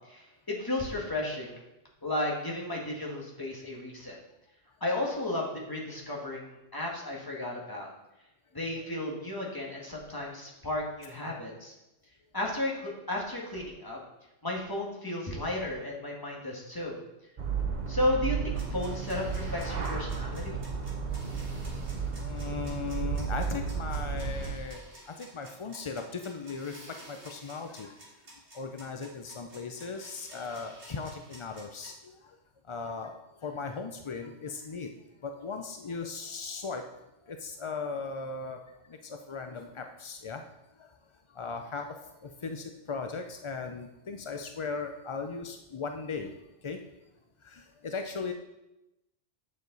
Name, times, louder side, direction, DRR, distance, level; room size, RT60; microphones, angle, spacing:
voice 1, 0.1-1.6 2.0-4.2 4.8-7.9 8.5-11.7 12.3-14.0 14.4-17.0 17.9-20.6, left 1 dB, 15° left, -3 dB, 1.8 m, -33 dB
sound 1, 17.4-24.5, right 5 dB, 40° right, 1.0 m, -33 dB
sound 2, 18.6-31.9, right 1 dB, 65° right, 2.7 m, -52 dB
voice 2, 22.2-27.9 28.5-32.4 32.7-34.9 35.2-36.8 37.3-38.6 38.9-40.4 40.8-41.0 41.3-46.4 46.6-46.8 47.4-48.3, left 4 dB, 55° left, 5 dB, 0.3 m, -38 dB
8.5 x 7.1 x 4.0 m, 0.94 s
omnidirectional pair, 1.3 m